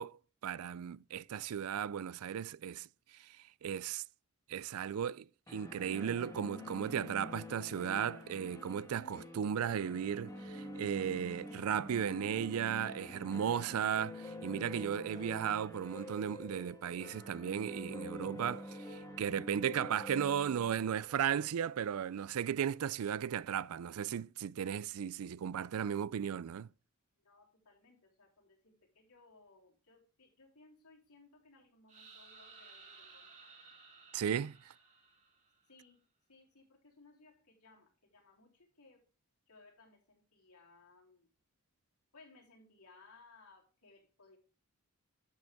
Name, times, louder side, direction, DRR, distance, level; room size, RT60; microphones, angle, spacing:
voice 1, 0.0-2.9 3.2-3.4 3.6-4.0 4.5-26.7 34.1-34.7, right 8 dB, 70° right, 0.4 m, -36 dB
sound 1, 5.5-22.2, left 1 dB, 15° left, 1.6 m, -47 dB
voice 2, 27.2-33.6 35.7-36.0 36.3-39.0 39.5-41.3 42.1-44.4, left 3 dB, 80° left, 3.8 m, -62 dB
sound 2, 31.9-35.7, right 4 dB, 35° right, 2.7 m, -57 dB
11.5 x 7.9 x 3.5 m
head